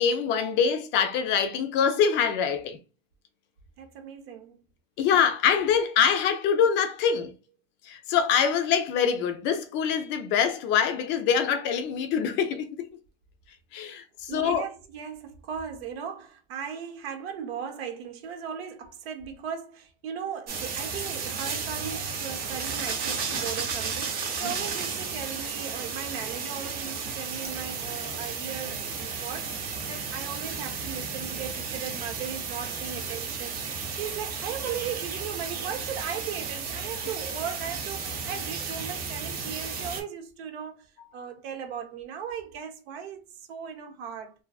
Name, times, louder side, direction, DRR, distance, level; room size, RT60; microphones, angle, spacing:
voice 1, 0.0-2.8 5.0-7.3 7.9-12.7 13.7-14.7 24.4-24.5, left 7 dB, 40° left, 0.4 m, -24 dB
voice 2, 3.8-4.6 14.3-40.9 41.1-44.3, right 7 dB, 80° right, 0.8 m, -37 dB
sound 1, 20.5-40.0, right 5 dB, 30° right, 0.6 m, -33 dB
2.6 x 2.3 x 2.3 m
supercardioid pair, 140°, 30 cm